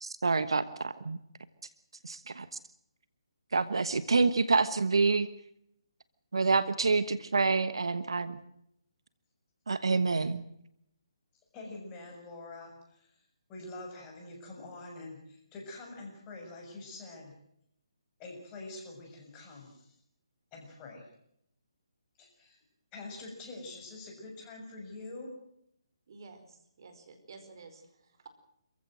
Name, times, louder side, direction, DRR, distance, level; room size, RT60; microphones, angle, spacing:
voice 1, 0.0-1.2 2.0-2.5 3.5-5.3 6.3-8.4 9.7-10.4, right 4 dB, 70° right, 14 dB, 1.3 m, -27 dB
voice 2, 11.5-13.2 13.5-17.3 18.2-19.9 20.5-21.1 22.2-22.6 22.9-25.3, left 2 dB, 20° left, 1 dB, 6.9 m, -45 dB
voice 3, 26.1-28.3, right 4 dB, 50° right, 8 dB, 4.7 m, -52 dB
26.5 x 15.5 x 7.7 m, 0.75 s
figure-of-eight pair, 145°, 3 cm